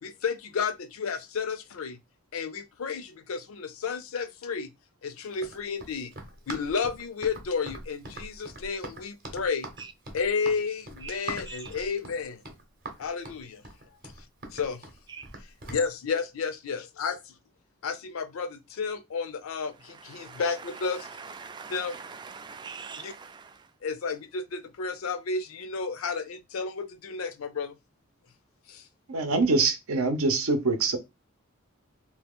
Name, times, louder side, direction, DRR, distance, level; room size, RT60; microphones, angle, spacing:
voice 1, 0.0-2.0 2.3-4.7 5.0-6.1 6.5-9.7 10.1-12.4 13.0-13.6 14.5-14.8 15.7-17.3 17.8-21.1 21.7-22.0 23.0-23.1 23.8-27.8 28.7-28.9, left 5 dB, 70° left, 0.5 m, -32 dB
Run, 5.3-15.8, right 2 dB, 45° right, 0.8 m, -42 dB
voice 2, 19.8-23.7, right 5 dB, 20° right, 0.3 m, -43 dB
voice 3, 29.1-31.0, right 3 dB, 80° right, 0.7 m, -24 dB
2.8 x 2.4 x 3.5 m
head